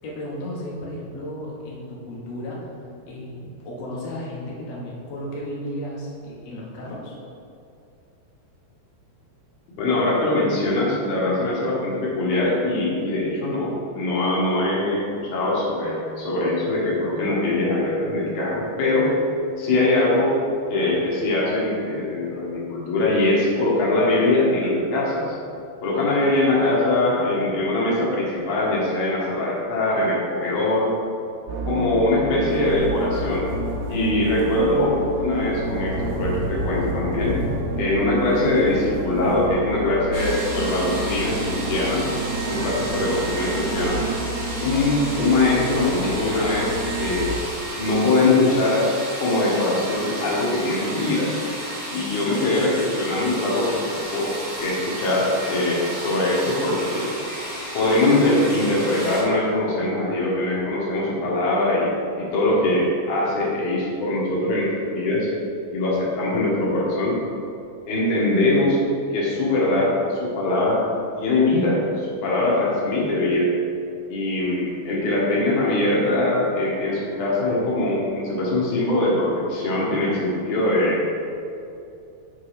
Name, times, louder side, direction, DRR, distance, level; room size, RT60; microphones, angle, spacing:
voice 1, 0.0-2.6 3.1-7.1, left 1 dB, 90° left, -5 dB, 1.4 m, -34 dB
voice 2, 9.8-19.1 19.6-20.4 20.7-25.3 25.8-30.9 31.6-33.5 33.9-37.4 37.8-42.0 42.5-44.0 44.6-47.4 47.8-48.9 49.2-51.3 51.9-54.3 54.6-57.1 57.7-61.9 62.2-65.3 65.7-67.2 67.9-68.8 69.1-70.8 71.2-73.5 74.1-81.1, left 2 dB, 60° left, -5 dB, 2.1 m, -22 dB
sound 1, 31.5-47.2, right 2 dB, 85° right, 2.6 m, -30 dB
sound 2, 32.5-47.7, right 1 dB, 65° right, 2.8 m, -36 dB
sound 3, 40.1-59.2, right 1 dB, 45° right, 1.9 m, -33 dB
6.7 x 4.7 x 4.9 m, 2.6 s
omnidirectional pair, 5.0 m